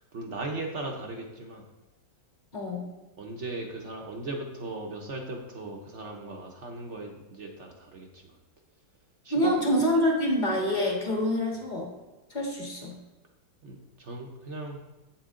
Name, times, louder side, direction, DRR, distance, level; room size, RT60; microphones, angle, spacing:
voice 1, 0.1-1.6 3.2-8.4 9.2-9.5 13.6-14.8, right 2 dB, 50° right, 1 dB, 1.0 m, -38 dB
voice 2, 2.5-2.8 9.3-11.9 12.3-12.9, equal, 25° left, -1 dB, 1.8 m, -26 dB
8.4 x 7.2 x 3.7 m, 1.1 s
omnidirectional pair, 1.9 m